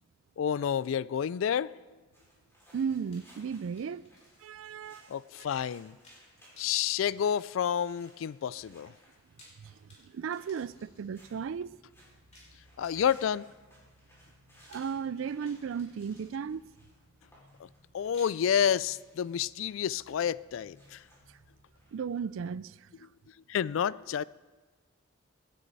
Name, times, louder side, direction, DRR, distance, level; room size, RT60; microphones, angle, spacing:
voice 1, 0.4-1.8 5.1-6.0 6.6-8.9 12.8-13.5 17.6-17.7 17.9-21.0 23.5-24.2, left 8 dB, 70° left, 0.3 m, -29 dB
sound 1, 2.1-22.0, equal, 15° left, 5.3 m, -61 dB
voice 2, 2.7-4.1 4.4-5.1 9.6-11.8 14.7-16.6 21.3-21.4 21.9-23.1, right 6 dB, 70° right, 0.3 m, -35 dB
sound 2, 3.1-4.6 4.9-5.0 6.0-6.3 6.6-8.1 9.1-11.3 12.3-13.5 14.7-16.6 18.1-19.5, left 1 dB, 35° left, 5.5 m, -59 dB
18.0 x 12.5 x 4.1 m
head